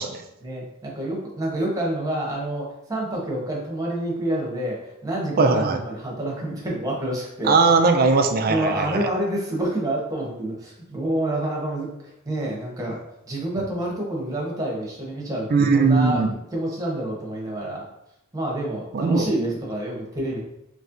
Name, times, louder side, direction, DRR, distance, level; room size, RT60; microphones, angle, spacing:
voice 1, 0.4-7.6 8.5-13.0 13.2-16.2 16.5-17.8 18.3-20.4, right 1 dB, 15° right, -3 dB, 0.9 m, -28 dB
voice 2, 5.4-5.8 7.4-9.1 15.5-16.3 18.9-19.3, right 4 dB, 45° right, 6 dB, 0.4 m, -19 dB
4.2 x 3.1 x 2.5 m, 0.81 s
head